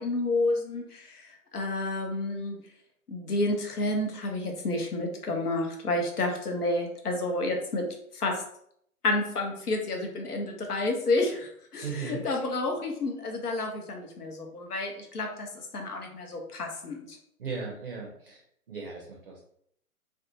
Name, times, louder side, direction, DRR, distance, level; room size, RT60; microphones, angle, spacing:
voice 1, 0.0-2.6 3.1-7.9 8.1-8.4 9.0-17.2, left 2 dB, 85° left, 3 dB, 0.8 m, -30 dB
voice 2, 11.8-12.2 17.4-18.4 18.7-19.4, right 5 dB, 40° right, -1 dB, 0.4 m, -37 dB
2.6 x 2.1 x 2.7 m, 0.68 s
figure-of-eight pair, 130°, 44 cm